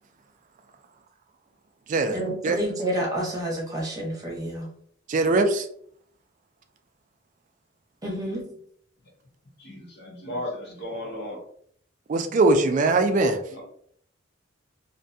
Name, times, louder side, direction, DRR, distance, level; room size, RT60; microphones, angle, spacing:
voice 1, 2.1-4.7 8.0-8.4, right 1 dB, 20° right, -3 dB, 0.8 m, -29 dB
voice 2, 5.1-5.7 12.1-13.4, right 2 dB, 40° right, 7 dB, 0.3 m, -21 dB
voice 3, 9.6-11.4 13.5-13.6, left 1 dB, 60° left, -2 dB, 0.8 m, -35 dB
2.5 x 2.2 x 2.6 m, 0.64 s
head